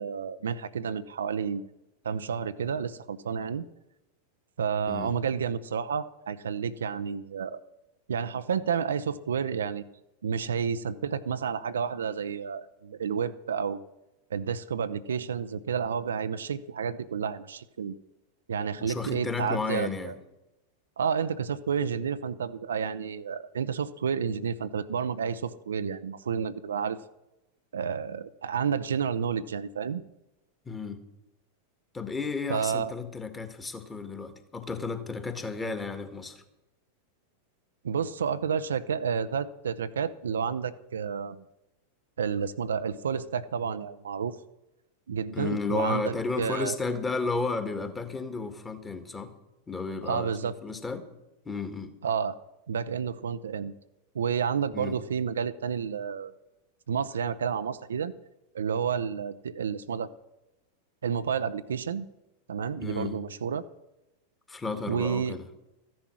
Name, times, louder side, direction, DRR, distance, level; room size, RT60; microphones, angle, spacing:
voice 1, 0.0-1.7 2.0-3.6 4.6-7.6 8.1-9.8 10.2-13.8 14.3-17.9 18.5-20.2 21.0-27.0 27.7-30.0 32.5-32.9 37.8-41.4 42.2-44.4 45.1-46.8 50.0-50.5 52.0-52.4 52.7-53.7 54.1-56.3 56.9-58.1 58.5-60.1 61.0-62.1 62.5-63.6 64.9-65.4, right 7 dB, 65° right, 12 dB, 0.6 m, -30 dB
voice 2, 18.8-20.1 30.6-31.0 31.9-36.4 45.3-49.3 49.7-51.1 51.4-51.9 54.7-55.0 62.8-63.2 64.5-65.4, left 4 dB, 15° left, 9 dB, 1.7 m, -33 dB
14.5 x 10.5 x 6.2 m, 0.96 s
figure-of-eight pair, 90°, 0 cm